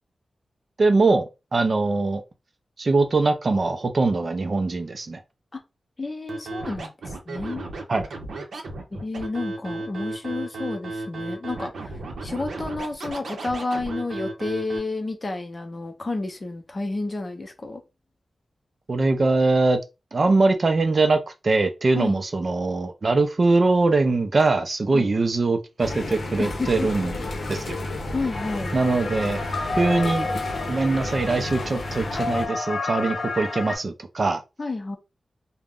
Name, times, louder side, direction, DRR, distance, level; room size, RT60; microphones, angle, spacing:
voice 1, 0.8-1.3 1.5-2.2 2.8-5.2 7.9-8.0 18.9-19.8 20.1-21.2 21.4-27.1 27.5-27.8 28.7-29.4 29.8-30.3 30.7-34.4, right 3 dB, 40° right, 0.4 m, -22 dB
voice 2, 6.0-6.9 7.3-7.7 8.9-17.8 21.9-22.2 24.9-25.1 26.4-26.9 28.1-28.7 34.6-35.0, left 3 dB, 30° left, 0.5 m, -30 dB
Scratching (performance technique), 6.3-14.8, right 2 dB, 85° right, 0.6 m, -34 dB
sound 1, 25.8-32.5, left 2 dB, 70° left, 0.6 m, -31 dB
sound 2, 28.3-33.8, left 3 dB, 45° left, 0.9 m, -31 dB
2.4 x 2.0 x 3.4 m
wide cardioid pair, 155°, 0 cm